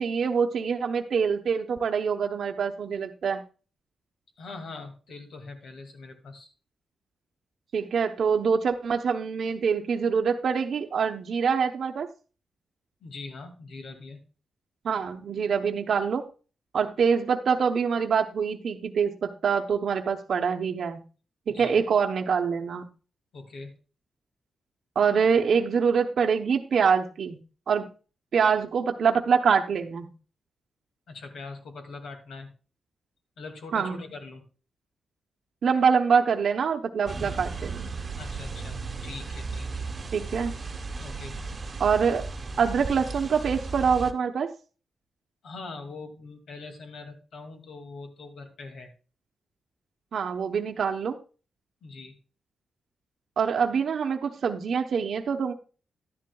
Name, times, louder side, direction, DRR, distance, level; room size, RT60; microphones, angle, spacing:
voice 1, 0.0-3.4 7.7-12.1 14.8-16.2 16.7-21.0 21.5-22.9 24.9-27.4 27.7-27.9 28.3-30.1 33.7-34.0 35.6-37.9 40.1-40.5 41.8-42.3 42.6-44.5 50.1-51.1 53.4-55.5, right 6 dB, 65° right, 3 dB, 0.8 m, -25 dB
voice 2, 4.4-6.5 13.0-14.2 21.5-21.8 23.3-23.7 31.1-32.5 33.4-34.4 38.2-40.0 41.0-41.4 45.4-48.9 51.8-52.2, left 3 dB, 75° left, 5 dB, 2.2 m, -42 dB
sound 1, 37.1-44.1, right 4 dB, 35° right, 1.1 m, -35 dB
12.0 x 10.5 x 2.3 m, 0.36 s
cardioid pair, 110°, 0 cm